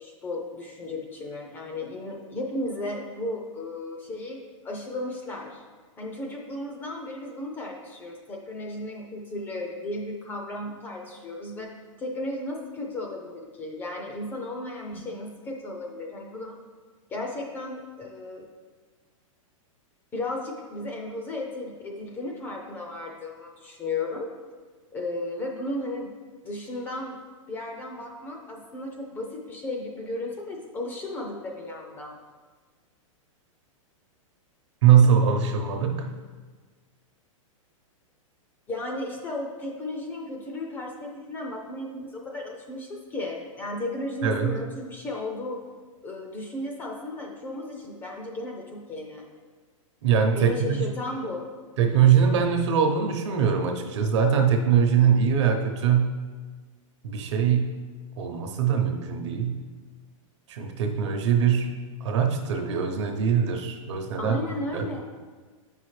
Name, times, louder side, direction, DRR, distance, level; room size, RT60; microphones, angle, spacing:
voice 1, 0.0-5.6 6.0-11.7 12.0-16.6 17.1-18.4 20.1-24.3 24.9-26.1 26.4-27.2 27.5-32.2 38.7-45.6 46.0-49.3 50.4-51.4 64.2-65.0, left 2 dB, 10° left, 1 dB, 0.5 m, -34 dB
voice 2, 34.8-36.1 44.2-44.6 50.0-50.8 51.8-56.2 57.0-57.8 58.2-59.7 60.5-64.4 64.7-64.8, right 7 dB, 55° right, 4 dB, 0.9 m, -22 dB
8.3 x 5.6 x 3.2 m, 1.4 s
supercardioid pair, 165°, 17 cm